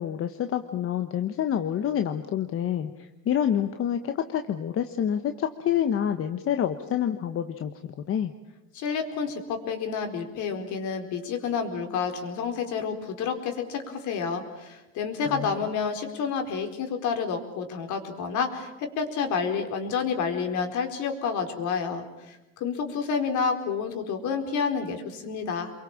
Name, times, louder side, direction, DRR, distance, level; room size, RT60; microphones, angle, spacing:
voice 1, 0.0-7.7 8.1-8.3 15.3-15.5, left 9 dB, 40° left, 7 dB, 1.4 m, -27 dB
voice 2, 8.7-25.7, left 6 dB, 60° left, 5 dB, 4.4 m, -29 dB
28.5 x 23.0 x 7.4 m, 0.98 s
supercardioid pair, 120°, 34 cm